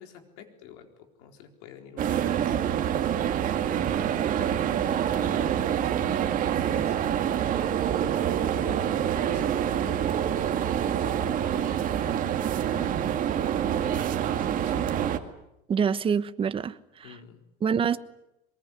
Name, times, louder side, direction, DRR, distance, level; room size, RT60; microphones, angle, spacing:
voice 1, 0.0-7.4 8.6-9.7 10.4-13.3 13.7-15.0 17.0-17.4, left 7 dB, 80° left, 4.2 m, -47 dB
sound 1, 2.0-15.2, right 9 dB, 40° right, 2.1 m, -26 dB
voice 2, 15.7-17.2 17.6-18.0, right 7 dB, 25° right, 1.1 m, -26 dB
23.0 x 21.0 x 9.9 m
supercardioid pair, 130°, 21 cm